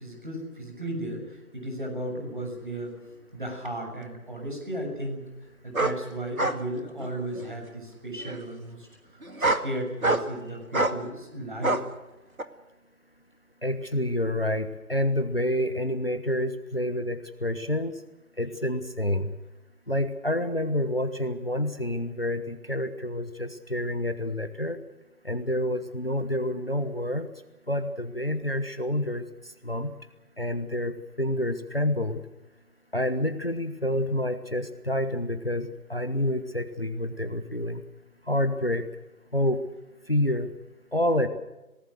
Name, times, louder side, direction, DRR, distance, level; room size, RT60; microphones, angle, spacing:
voice 1, 0.0-8.9 9.4-11.8, right 1 dB, 35° right, 2 dB, 6.9 m, -35 dB
sound 1, 3.7-3.8 5.7-6.0 6.4-6.6 7.0-7.5 8.3-8.4 9.2-9.7 10.0-10.4 10.7-11.0 11.6-11.8 12.4-12.5, right 2 dB, 65° right, 2.3 m, -26 dB
voice 2, 13.6-18.0 18.4-19.3 19.9-24.8 25.2-27.3 27.7-29.9 30.4-32.2 32.9-37.8 38.3-38.9 39.3-39.6 40.1-40.5 40.9-41.3, left 1 dB, 40° left, 9 dB, 1.3 m, -28 dB
27.0 x 19.0 x 6.5 m, 1.0 s
figure-of-eight pair, 180°, 44 cm